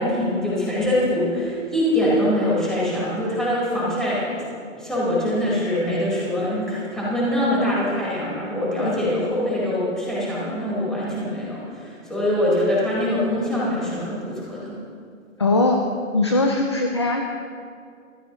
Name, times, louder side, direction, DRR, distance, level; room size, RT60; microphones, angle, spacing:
voice 1, 0.0-4.4 4.8-14.8, left 1 dB, ahead, -9 dB, 4.5 m, -23 dB
voice 2, 15.4-15.8 16.1-17.2, left 2 dB, 20° left, 3 dB, 0.4 m, -20 dB
25.5 x 15.0 x 3.1 m, 2.3 s
hypercardioid pair, 165°, 39 cm